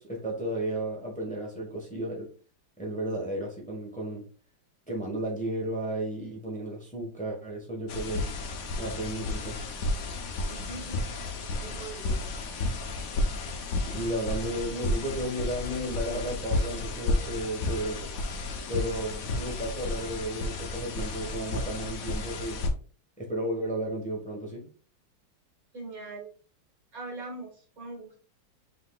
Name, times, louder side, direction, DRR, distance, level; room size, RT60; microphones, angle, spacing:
voice 1, 0.0-2.3 2.8-4.2 4.9-8.2 8.8-9.6 13.8-18.1 18.7-22.6 23.2-24.6, right 1 dB, 5° left, -1 dB, 0.7 m, -33 dB
sound 1, 7.9-22.7, left 2 dB, 65° left, 0.9 m, -32 dB
voice 2, 10.4-11.0 11.6-12.1 25.7-26.3 26.9-28.2, right 3 dB, 45° right, -1 dB, 2.0 m, -41 dB
5.6 x 3.7 x 2.3 m, 0.40 s
omnidirectional pair, 2.1 m